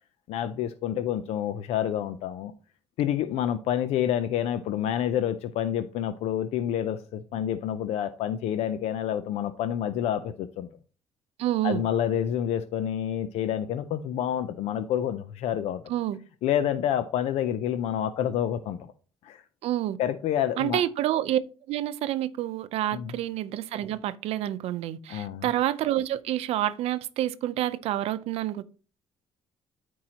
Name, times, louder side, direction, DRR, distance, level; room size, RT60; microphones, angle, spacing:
voice 1, 0.3-2.5 3.0-10.7 11.6-15.8 16.4-18.9 19.2-19.4 20.0-20.8 22.9-23.1 25.1-25.5, left 10 dB, 80° left, 0.6 m, -28 dB
voice 2, 11.4-11.8 15.9-16.2 19.6-20.0 20.6-21.4 21.7-28.6, right 13 dB, 70° right, 0.6 m, -28 dB
12.5 x 4.7 x 2.9 m
cardioid pair, 160°, 11 cm